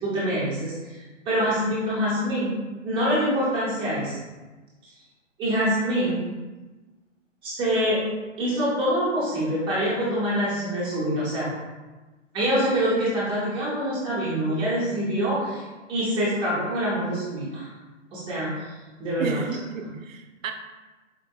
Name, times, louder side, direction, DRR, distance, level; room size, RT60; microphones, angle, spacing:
voice 1, 0.0-2.5 2.8-4.2 5.4-6.2 7.4-8.0 8.4-11.5 12.3-15.6 15.9-17.7 18.1-19.4, equal, 15° right, -8 dB, 0.7 m, -25 dB
voice 2, 19.2-20.5, right 6 dB, 85° right, 5 dB, 0.5 m, -32 dB
4.4 x 2.5 x 2.3 m, 1.2 s
hypercardioid pair, 140°, 38 cm